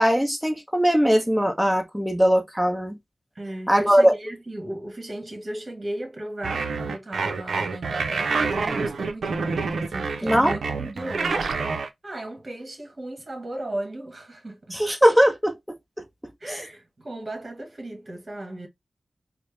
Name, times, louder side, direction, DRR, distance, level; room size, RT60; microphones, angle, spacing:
voice 1, 0.0-3.0 3.7-4.1 10.2-10.5 14.7-15.5 16.5-16.6, equal, ahead, 0.9 m, -20 dB
voice 2, 3.3-14.8 16.4-18.7, right 1 dB, 40° right, 1.5 m, -36 dB
sound 1, 6.4-11.9, right 4 dB, 90° right, 0.5 m, -27 dB
4.3 x 2.1 x 3.3 m
wide cardioid pair, 85°, 0 cm